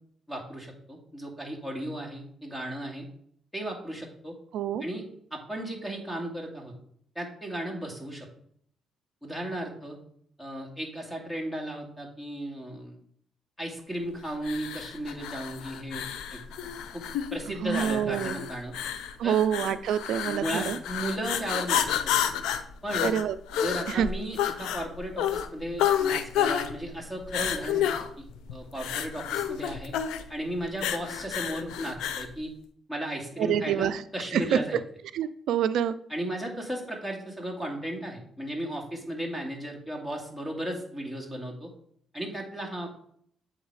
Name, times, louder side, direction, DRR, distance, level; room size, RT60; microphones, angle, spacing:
voice 1, 0.3-3.1 3.5-4.3 4.8-5.0 5.3-6.7 7.2-8.3 9.2-10.0 10.4-12.9 13.6-16.4 16.9-17.0 17.3-18.7 19.2-19.4 20.3-22.3 22.8-23.1 23.5-27.9 28.2-28.3 28.5-29.9 30.3-32.5 32.9-34.8 36.1-41.7 42.1-42.9, right 1 dB, 10° left, 0 dB, 2.2 m, -35 dB
voice 2, 4.5-4.8 17.6-18.4 19.2-20.8 23.0-23.4 23.9-24.1 33.4-34.0 34.3-34.6 35.1-35.9, right 9 dB, 80° right, 14 dB, 0.3 m, -26 dB
sound 1, 14.4-32.3, left 10 dB, 90° left, 0.6 m, -30 dB
8.0 x 4.0 x 4.7 m, 0.64 s
cardioid pair, 90°, 0 cm